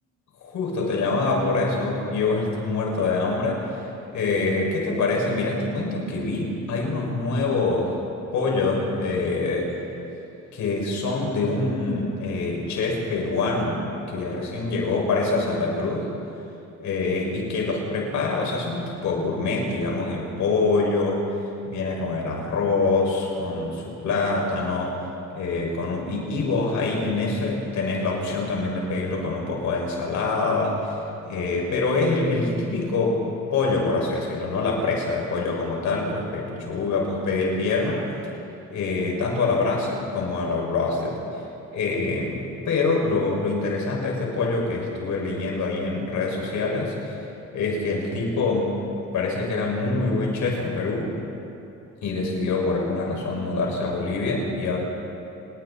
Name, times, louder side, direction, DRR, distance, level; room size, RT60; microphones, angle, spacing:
voice 1, 0.4-3.6 4.1-8.0 8.3-9.7 10.5-13.8 14.1-16.1 16.8-21.2 21.7-24.9 25.3-30.9 31.2-33.2 33.5-38.0 38.7-41.2 41.7-46.9 47.5-48.8 49.1-51.1 52.0-54.8, left 3 dB, 75° left, -1 dB, 6.3 m, -25 dB
29.5 x 21.0 x 4.4 m, 2.8 s
cardioid pair, 90°, 30 cm